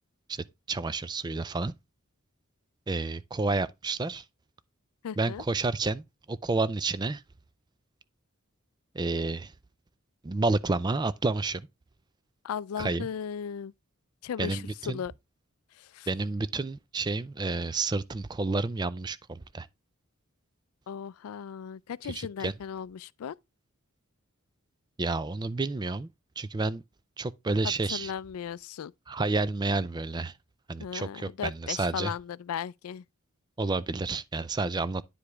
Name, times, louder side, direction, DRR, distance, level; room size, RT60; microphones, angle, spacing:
voice 1, 0.3-1.8 2.9-4.2 5.2-7.2 8.9-9.5 10.2-11.7 12.8-13.1 14.4-15.0 16.1-19.7 22.0-22.5 25.0-26.1 26.4-26.8 27.2-28.1 29.1-30.3 30.7-32.1 33.6-35.0, right 3 dB, 20° right, 0.4 m, -30 dB
voice 2, 5.0-5.4 12.4-13.7 14.2-15.1 15.8-16.1 20.9-23.3 27.9-28.9 30.8-33.0, left 8 dB, 85° left, 0.4 m, -36 dB
9.8 x 4.9 x 3.3 m
head